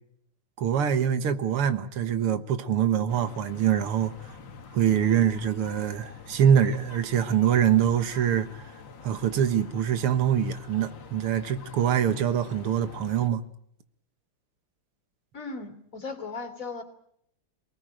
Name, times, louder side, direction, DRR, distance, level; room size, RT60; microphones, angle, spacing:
voice 1, 0.6-4.1 4.7-8.5 9.0-13.4, right 9 dB, 90° right, 2.3 m, -24 dB
sound 1, 3.1-13.3, left 5 dB, 60° left, 2.3 m, -46 dB
voice 2, 15.3-16.8, left 4 dB, 35° left, 3.4 m, -37 dB
28.0 x 19.0 x 9.0 m
omnidirectional pair, 2.4 m